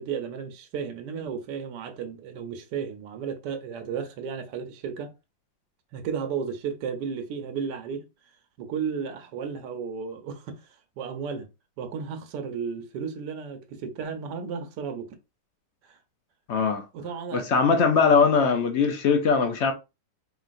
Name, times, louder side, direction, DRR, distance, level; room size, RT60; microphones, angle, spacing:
voice 1, 0.0-5.1 5.9-8.0 8.6-10.6 11.0-11.5 11.8-15.1 15.8-16.0 16.9-17.5, right 6 dB, 75° right, 1.3 m, -33 dB
voice 2, 16.5-16.8 17.3-19.7, left 5 dB, 70° left, 0.6 m, -21 dB
4.7 x 3.0 x 2.5 m
omnidirectional pair, 1.9 m